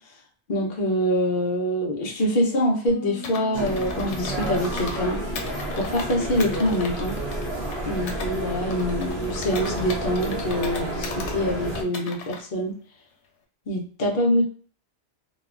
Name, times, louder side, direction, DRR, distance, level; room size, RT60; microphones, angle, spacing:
voice 1, 0.5-5.2 5.7-7.2 7.9-12.8 13.7-14.4, equal, 50° left, -2 dB, 0.8 m, -25 dB
Bass guitar, 2.9-9.1, equal, 25° right, 0.8 m, -44 dB
Computer keyboard, 3.2-5.0 5.4-8.3 8.7-11.4 11.8-12.4, left 4 dB, 90° left, 0.9 m, -38 dB
sound 1, 3.5-11.8, right 1 dB, 65° right, 0.9 m, -30 dB
3.0 x 2.1 x 2.4 m, 0.41 s
omnidirectional pair, 1.2 m